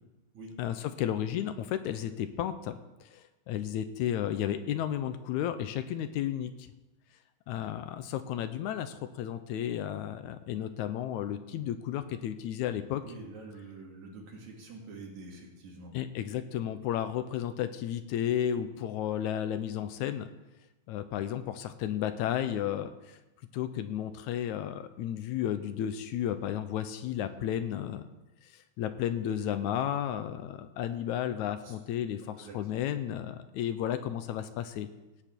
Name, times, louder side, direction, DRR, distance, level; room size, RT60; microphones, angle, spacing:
voice 1, 0.6-6.7 7.5-13.0 15.9-20.3 20.9-23.2 23.5-28.0 28.4-28.5 28.8-34.9, left 10 dB, 85° left, 10 dB, 2.1 m, -33 dB
voice 2, 13.0-15.9 31.6-31.7 32.4-32.5, right 3 dB, 70° right, 0 dB, 3.5 m, -46 dB
17.0 x 9.0 x 4.5 m, 1.0 s
omnidirectional pair, 3.4 m